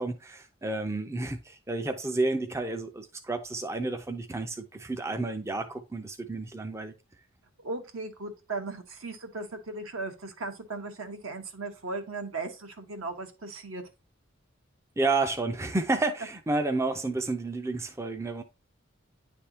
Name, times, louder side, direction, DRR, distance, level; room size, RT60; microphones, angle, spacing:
voice 1, 0.0-6.9 15.0-18.4, right 2 dB, 15° right, 0.4 m, -30 dB
voice 2, 7.6-13.8, right 3 dB, 75° right, 1.2 m, -37 dB
10.0 x 3.4 x 2.7 m
head